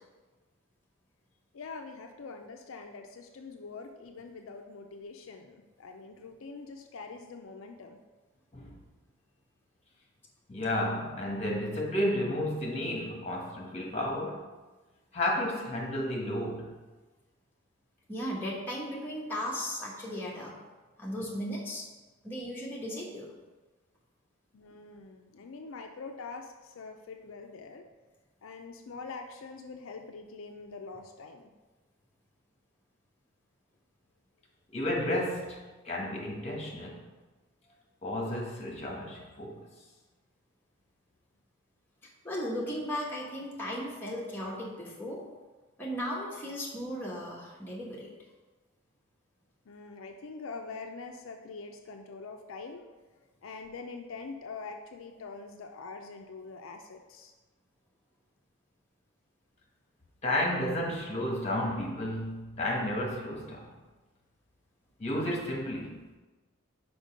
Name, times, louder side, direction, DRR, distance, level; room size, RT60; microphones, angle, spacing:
voice 1, 1.5-8.0 24.5-27.9 28.4-31.5 49.7-52.8 53.4-57.3, left 4 dB, 75° left, 4 dB, 0.5 m, -44 dB
voice 2, 10.5-14.5 15.1-16.7 34.7-37.0 38.0-39.7 60.2-63.7 65.0-66.0, left 1 dB, 30° left, -1 dB, 1.3 m, -32 dB
voice 3, 18.1-20.5 21.0-21.9 22.2-23.3 42.0-45.3 45.8-48.1, equal, 10° left, -4 dB, 1.2 m, -36 dB
5.2 x 4.8 x 5.0 m, 1.2 s
head